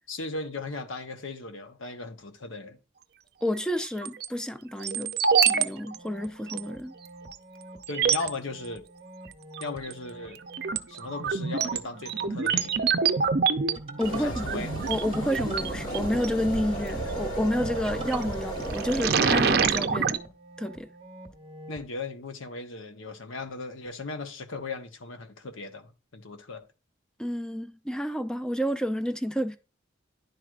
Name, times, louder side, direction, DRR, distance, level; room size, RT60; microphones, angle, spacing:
voice 1, 0.1-2.8 7.9-8.8 9.6-10.4 10.9-12.9 14.1-14.7 21.7-26.6, left 3 dB, 85° left, 1.1 m, -37 dB
voice 2, 3.4-6.9 14.0-14.6 14.9-20.2 20.6-20.9 27.2-29.6, equal, 5° left, 0.5 m, -30 dB
sound 1, 3.8-4.3 4.8-5.7 5.9-6.0 6.5-6.6 7.3-7.4 7.8-8.3 9.6-9.9 10.3-16.3 17.9-18.2 18.6-20.2, right 6 dB, 50° right, 0.5 m, -26 dB
sound 2, 5.8-21.9, right 2 dB, 30° right, 1.0 m, -45 dB
sound 3, 14.0-19.1, right 1 dB, 40° left, 1.7 m, -34 dB
11.0 x 4.7 x 2.5 m
head